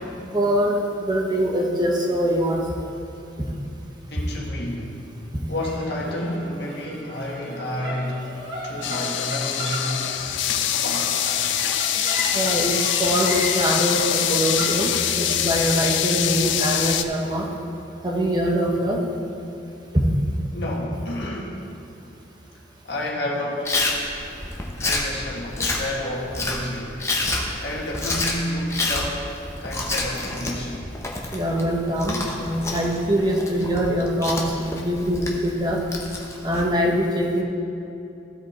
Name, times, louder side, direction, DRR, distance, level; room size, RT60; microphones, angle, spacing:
voice 1, 0.3-2.9 12.3-17.5 18.0-19.0 19.9-20.0 31.3-35.8 36.4-37.4, equal, 25° right, 0 dB, 0.9 m, -23 dB
voice 2, 4.1-5.0 5.5-8.3 8.6-10.2 10.8-11.2 20.5-21.6 22.8-23.8 24.8-27.0 27.6-29.3 29.6-30.8, left 1 dB, 65° left, -2 dB, 1.5 m, -30 dB
sound 1, 5.6-22.2, equal, 65° right, 1.8 m, -37 dB
sound 2, 8.8-17.0, left 10 dB, 85° left, 0.5 m, -24 dB
Chewing mastication, 23.6-36.7, left 2 dB, 15° left, 0.8 m, -29 dB
15.0 x 5.1 x 4.3 m, 2.7 s
head